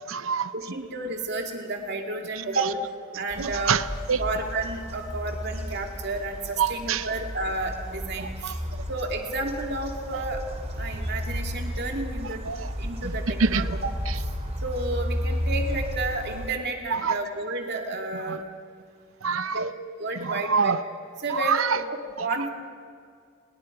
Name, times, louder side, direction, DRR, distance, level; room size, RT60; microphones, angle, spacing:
voice 1, 0.0-0.5 3.4-4.2 6.6-7.1 8.2-8.5 12.5-12.7 13.0-13.7 14.1-14.2 16.9-17.2 18.3-18.4 19.2-19.7 20.2-20.8 21.3-21.8 22.2-22.3, right 6 dB, 85° right, 13 dB, 0.7 m, -26 dB
voice 2, 0.5-2.8 3.2-3.8 4.2-8.6 8.9-10.4 10.8-12.4 12.8-13.9 14.6-18.4 19.4-19.7 20.0-20.8 21.2-22.5, right 2 dB, 55° right, 2 dB, 2.6 m, -31 dB
sound 1, 3.3-16.5, equal, 30° right, 2.8 m, -33 dB
29.5 x 21.5 x 4.9 m, 2.2 s
head